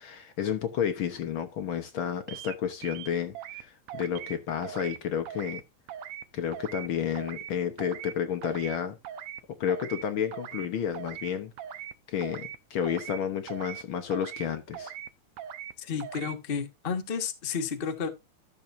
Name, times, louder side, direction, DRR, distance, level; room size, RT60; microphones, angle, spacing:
voice 1, 0.0-5.6 6.3-9.0 9.6-11.5 12.1-14.9, left 8 dB, 65° left, 1.3 m, -31 dB
sound 1, 2.3-2.6 2.8-3.6 3.9-4.4 4.6-5.0 5.3-5.6 5.9-6.2 6.5-6.9 7.2-7.5 7.8-8.1 8.4-8.8 9.0-9.4 9.7-10.0 10.3-10.7 10.9-11.3 11.6-11.9 12.2-12.6 12.8-13.2 13.5-13.8 14.1-14.5 14.7-15.1 15.4-15.7 16.0-16.3, right 9 dB, 70° right, 2.0 m, -40 dB
voice 2, 15.8-18.1, left 6 dB, 80° left, 0.5 m, -32 dB
13.5 x 6.9 x 2.6 m
omnidirectional pair, 3.4 m